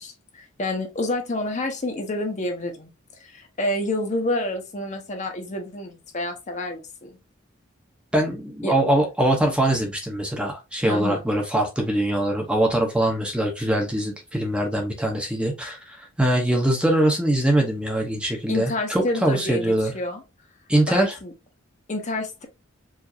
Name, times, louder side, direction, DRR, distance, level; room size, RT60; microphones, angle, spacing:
voice 1, 0.0-2.9 3.2-7.2 8.6-8.7 10.9-11.2 18.5-20.2 20.9-21.3 21.9-22.5, left 1 dB, 35° left, 0.9 m, -28 dB
voice 2, 8.1-19.9 20.7-21.1, right 1 dB, 5° right, 0.8 m, -22 dB
4.8 x 2.6 x 2.7 m
head